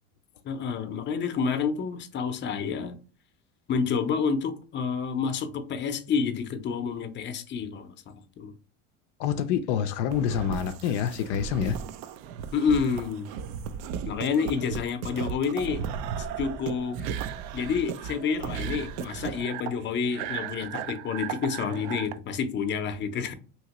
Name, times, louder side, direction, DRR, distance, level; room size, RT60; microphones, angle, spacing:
voice 1, 0.4-3.0 3.7-8.5 12.5-13.3 14.1-15.8 16.4-17.0 17.5-23.3, left 6 dB, 30° left, 0.6 m, -29 dB
voice 2, 9.2-11.8, left 8 dB, 75° left, 0.5 m, -27 dB
sound 1, 10.1-22.1, right 8 dB, 65° right, 0.5 m, -36 dB
3.0 x 2.8 x 2.9 m
supercardioid pair, 105°, 36 cm